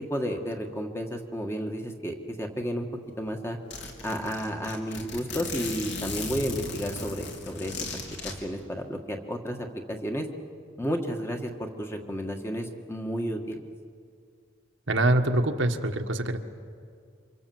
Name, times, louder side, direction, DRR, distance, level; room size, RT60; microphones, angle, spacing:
voice 1, 0.1-2.9 3.2-3.6 4.0-7.7 8.1-10.3 10.8-13.6, equal, 15° left, 3 dB, 1.7 m, -32 dB
Zipper (clothing), 2.9-3.0 3.3-3.4 3.7-8.3, left 3 dB, 60° left, 3.6 m, -36 dB
voice 2, 14.9-16.4, right 1 dB, 70° right, 5 dB, 1.6 m, -24 dB
28.0 x 25.5 x 7.9 m, 2.2 s
head